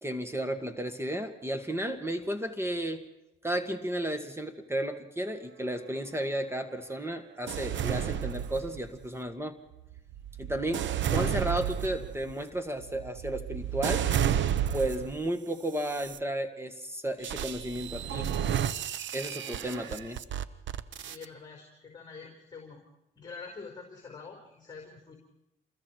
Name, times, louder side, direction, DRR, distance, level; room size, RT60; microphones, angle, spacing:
voice 1, 0.0-3.1 3.4-9.6 10.4-14.1 14.7-18.4 19.1-20.2, right 1 dB, 10° right, 7 dB, 1.9 m, -33 dB
sound 1, 7.5-9.0 9.7-15.2 15.8-16.2 17.2-21.3, right 10 dB, 70° right, 1.0 m, -32 dB
voice 2, 21.0-22.8 23.2-25.1, left 4 dB, 20° left, 1 dB, 4.8 m, -46 dB
28.0 x 22.0 x 4.7 m, 0.89 s
cardioid pair, 90°, 20 cm